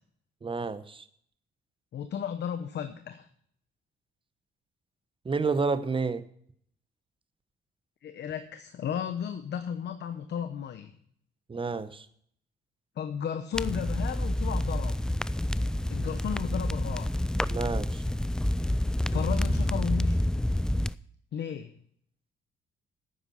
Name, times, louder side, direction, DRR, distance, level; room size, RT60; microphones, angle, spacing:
voice 1, 0.4-1.0 5.2-6.2 11.5-12.1 17.5-18.0, right 4 dB, 25° right, 13 dB, 1.0 m, -30 dB
voice 2, 1.9-3.3 8.0-10.9 13.0-15.0 15.9-17.1 19.1-20.2 21.3-21.7, left 8 dB, 60° left, 9 dB, 0.9 m, -34 dB
sound 1, 13.5-20.9, left 1 dB, 5° left, 0.3 m, -28 dB
9.8 x 9.0 x 5.6 m, 0.64 s
cardioid pair, 90°, 20 cm